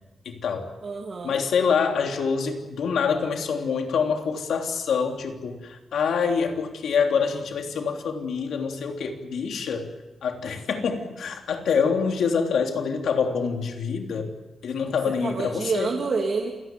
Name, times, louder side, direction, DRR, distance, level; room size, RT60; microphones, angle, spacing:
voice 1, 0.2-0.7 1.2-9.9 10.2-14.3 14.6-15.9, left 6 dB, 80° left, 3 dB, 3.3 m, -26 dB
voice 2, 0.8-1.3 15.1-16.5, right 4 dB, 45° right, -1 dB, 2.8 m, -28 dB
28.5 x 18.0 x 7.8 m, 1.1 s
wide cardioid pair, 165°, 0 cm